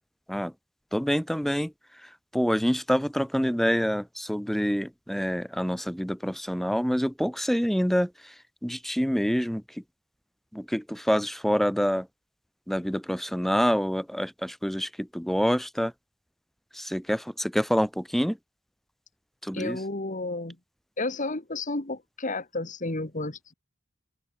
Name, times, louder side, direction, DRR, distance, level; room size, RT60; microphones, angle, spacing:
voice 1, 0.9-1.7 2.0-8.3 8.6-9.8 10.5-12.1 12.7-15.9 16.7-18.4 19.4-19.8, equal, ahead, 1.1 m, -27 dB
voice 2, 19.5-20.6 21.0-23.5, left 2 dB, 40° left, 2.1 m, -32 dB
open air
head